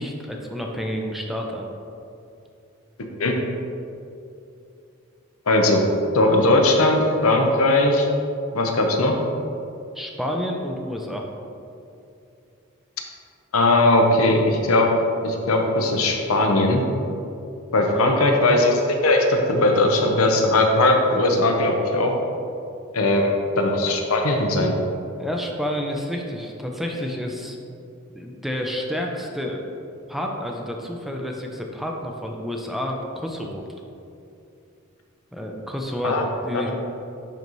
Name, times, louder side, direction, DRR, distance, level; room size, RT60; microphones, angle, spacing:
voice 1, 0.0-1.7 9.9-11.3 18.0-18.1 23.0-23.1 25.2-27.6 28.1-29.6 30.1-33.6 35.3-36.2 36.4-36.7, equal, ahead, 1 dB, 0.5 m, -29 dB
voice 2, 5.5-5.8 6.1-8.1 8.5-9.2 13.5-14.9 15.2-16.8 17.7-22.1 22.9-24.7 36.0-36.2 36.5-36.6, left 2 dB, 90° left, 2 dB, 0.8 m, -19 dB
10.5 x 4.0 x 3.1 m, 2.6 s
head